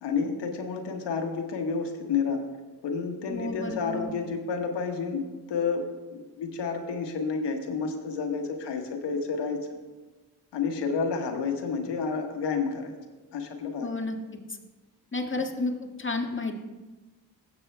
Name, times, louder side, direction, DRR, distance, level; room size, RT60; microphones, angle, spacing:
voice 1, 0.0-2.4 2.8-9.6 10.5-12.9 13.3-13.9, left 5 dB, 75° left, 4 dB, 1.4 m, -30 dB
voice 2, 3.3-4.1 13.8-14.2 15.1-15.7 16.0-16.6, left 3 dB, 30° left, 2 dB, 1.8 m, -31 dB
16.5 x 8.2 x 2.2 m, 1.2 s
supercardioid pair, 45°, 42 cm